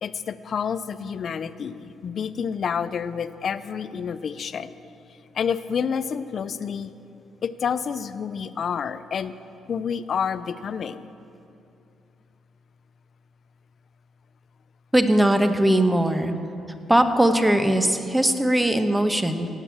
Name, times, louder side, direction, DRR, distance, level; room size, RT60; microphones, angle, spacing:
voice 1, 0.0-4.7 5.3-6.9 7.4-9.3 9.7-11.1, left 7 dB, 55° left, 13 dB, 0.6 m, -29 dB
voice 2, 14.9-16.3 16.9-19.5, right 1 dB, 10° right, 7 dB, 1.1 m, -20 dB
18.0 x 8.2 x 7.3 m, 2.7 s
cardioid pair, 90°, 0 cm